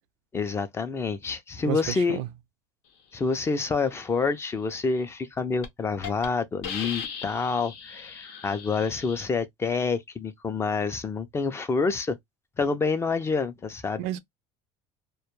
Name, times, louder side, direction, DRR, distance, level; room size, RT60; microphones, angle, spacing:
voice 1, 0.3-2.2 3.1-12.2 12.6-14.0, left 4 dB, 20° left, 0.4 m, -27 dB
voice 2, 1.6-2.3 14.0-14.2, right 12 dB, 85° right, 0.4 m, -31 dB
Hiss, 5.0-5.2 5.6-5.7 6.0-6.3 6.6-9.2, left 7 dB, 90° left, 0.7 m, -38 dB
2.2 x 2.1 x 3.0 m
cardioid pair, 135°, 13 cm